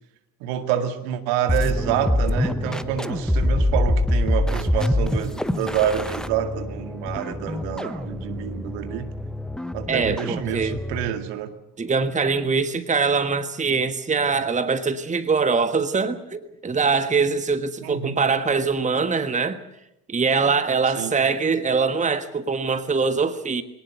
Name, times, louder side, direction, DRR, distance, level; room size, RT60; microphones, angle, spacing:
voice 1, 0.4-9.1 9.7-11.5 17.8-18.2 21.0-21.1, right 9 dB, 60° right, 8 dB, 2.2 m, -27 dB
sound 1, 1.5-11.2, left 1 dB, ahead, 1.1 m, -25 dB
voice 2, 9.9-10.8 11.8-19.6 20.1-23.6, right 4 dB, 15° right, 11 dB, 1.4 m, -23 dB
22.5 x 18.5 x 8.1 m, 0.87 s
figure-of-eight pair, 60°, 45 cm